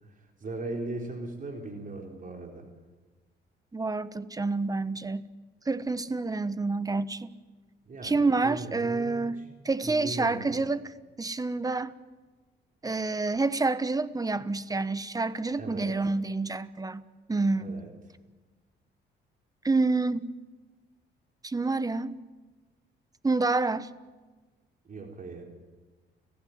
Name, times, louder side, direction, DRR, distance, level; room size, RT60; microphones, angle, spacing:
voice 1, 0.0-2.7 7.9-9.4 9.8-10.6 15.6-16.0 17.6-17.9 24.8-25.4, right 2 dB, 40° right, 4.3 m, -39 dB
voice 2, 3.7-5.3 5.6-7.4 8.0-10.9 11.2-11.9 12.8-17.8 19.6-20.3 21.4-22.1 23.2-23.9, right 3 dB, 20° right, 1.1 m, -28 dB
30.0 x 15.5 x 9.7 m
cardioid pair, 90°, 20 cm